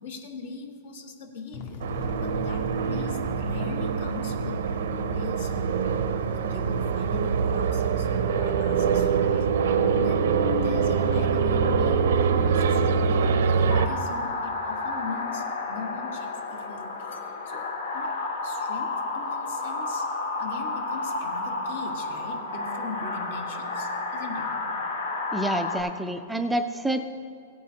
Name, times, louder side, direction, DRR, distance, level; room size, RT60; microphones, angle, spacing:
voice 1, 0.0-4.6 5.0-5.8 6.2-8.1 8.3-9.6 10.0-13.4 13.7-20.1 20.4-24.8, left 4 dB, 70° left, 4 dB, 1.5 m, -41 dB
sound 1, 1.5-14.0, left 4 dB, 40° left, 0.8 m, -44 dB
sound 2, 1.8-13.9, right 6 dB, 85° right, 0.6 m, -24 dB
sound 3, 13.7-25.8, left 3 dB, 85° left, 1.5 m, -31 dB
voice 2, 25.3-27.0, right 1 dB, 5° right, 6 dB, 0.3 m, -28 dB
16.5 x 9.2 x 2.8 m, 2.4 s
supercardioid pair, 155°, 0 cm